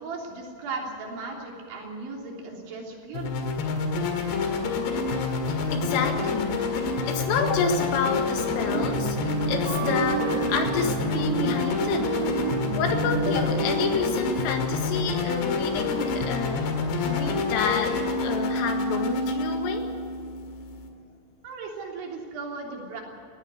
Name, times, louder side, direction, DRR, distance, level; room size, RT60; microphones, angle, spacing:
voice 1, 0.0-3.6 21.4-23.0, right 3 dB, 65° right, -1 dB, 5.6 m, -36 dB
sound 1, 3.1-20.9, left 3 dB, 65° left, 3.7 m, -28 dB
voice 2, 5.7-6.6 7.1-12.1 12.8-16.6 17.0-19.9, left 5 dB, 85° left, 4 dB, 4.5 m, -29 dB
sound 2, 8.7-14.0, right 12 dB, 85° right, 2.6 m, -31 dB
18.5 x 15.5 x 9.7 m, 2.5 s
omnidirectional pair, 5.8 m